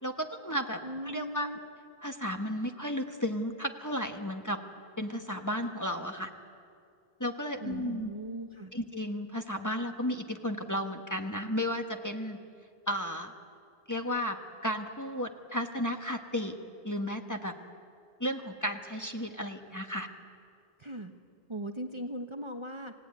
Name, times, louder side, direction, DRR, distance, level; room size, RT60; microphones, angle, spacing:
voice 1, 0.0-1.5 2.0-4.6 5.0-6.3 7.2-8.1 8.7-12.4 12.9-13.3 13.9-16.5 16.8-17.5 18.2-20.1, equal, 15° left, 4 dB, 1.3 m, -33 dB
voice 2, 0.8-1.6 7.6-8.7 20.8-21.1 21.5-22.9, right 1 dB, 30° right, 5 dB, 1.1 m, -38 dB
27.5 x 17.0 x 9.6 m, 2.4 s
omnidirectional pair, 1.1 m